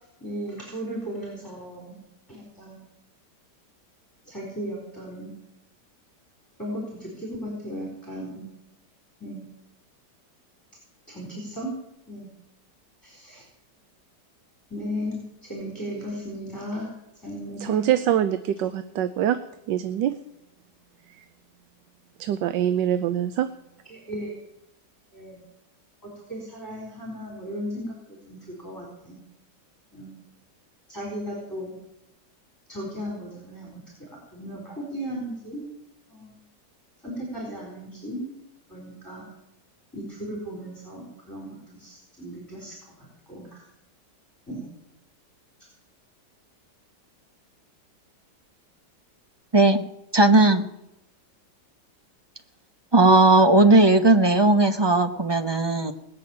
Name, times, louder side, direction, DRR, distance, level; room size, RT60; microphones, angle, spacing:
voice 1, 0.2-2.0 2.3-2.8 4.2-5.3 6.6-8.5 9.2-9.5 11.1-11.8 12.1-12.3 13.0-13.4 14.7-16.9 17.2-17.9 23.9-24.3 25.1-25.4 26.0-29.2 29.9-30.2 30.9-31.8 32.7-35.7 36.1-36.4 37.0-38.3 38.7-39.3 39.9-43.7 44.5-44.7, equal, 10° left, -3 dB, 4.4 m, -36 dB
voice 2, 17.6-19.4 19.7-20.2 21.2-21.3 22.2-23.5, right 11 dB, 85° right, 11 dB, 1.4 m, -24 dB
voice 3, 49.5-49.8 50.1-50.7 52.9-55.9, right 2 dB, 25° right, 7 dB, 0.6 m, -17 dB
19.5 x 6.7 x 8.5 m, 0.86 s
omnidirectional pair, 1.9 m